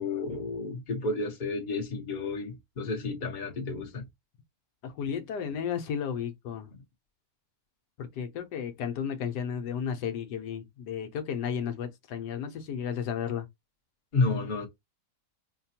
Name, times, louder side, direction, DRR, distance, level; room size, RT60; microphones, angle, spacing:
voice 1, 0.0-4.1 14.1-14.7, left 3 dB, 35° left, 0.9 m, -31 dB
voice 2, 4.8-6.7 8.0-13.5, left 7 dB, 75° left, 1.3 m, -33 dB
4.9 x 2.2 x 2.7 m
omnidirectional pair, 1.8 m